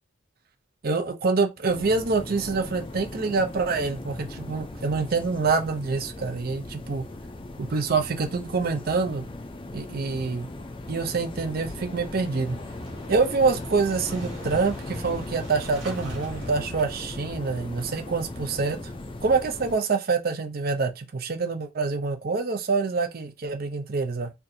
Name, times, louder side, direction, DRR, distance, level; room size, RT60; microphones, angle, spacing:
voice 1, 0.8-7.0 7.6-9.3 9.7-10.5 10.9-12.6 13.1-18.8 19.2-24.3, right 4 dB, 45° right, 0.5 m, -26 dB
sound 1, 1.7-19.8, left 2 dB, 25° left, 0.4 m, -38 dB
Motorcycle / Engine starting, 11.5-17.3, equal, 85° right, 1.6 m, -41 dB
4.3 x 2.6 x 2.7 m
head